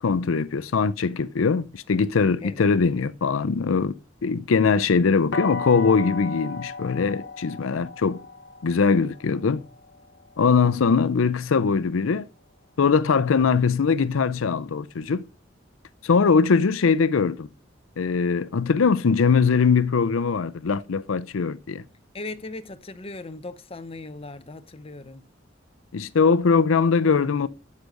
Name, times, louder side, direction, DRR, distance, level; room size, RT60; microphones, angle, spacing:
voice 1, 0.0-3.9 4.2-8.2 8.6-9.6 10.4-12.3 12.8-15.2 16.0-17.5 18.0-21.8 25.9-27.5, left 5 dB, 85° left, 0.5 m, -21 dB
sound 1, 5.3-11.2, left 4 dB, 60° left, 0.9 m, -36 dB
voice 2, 22.1-25.3, left 2 dB, 30° left, 0.7 m, -38 dB
8.2 x 6.5 x 6.5 m
head